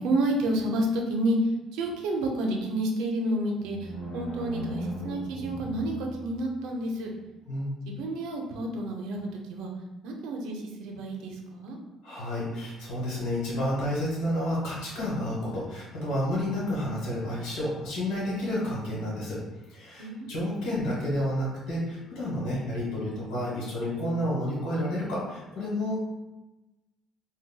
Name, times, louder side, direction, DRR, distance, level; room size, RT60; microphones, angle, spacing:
voice 1, 0.0-7.1 7.9-9.7 10.0-11.8 20.0-20.3, right 1 dB, 80° right, 1 dB, 0.5 m, -30 dB
sound 1, 3.6-6.7, right 1 dB, 55° left, 1.3 m, -37 dB
voice 2, 7.5-7.8 12.0-19.4 19.7-26.0, left 1 dB, 80° left, -7 dB, 1.2 m, -30 dB
3.9 x 2.2 x 2.2 m, 1.1 s
cardioid pair, 175°, 0 cm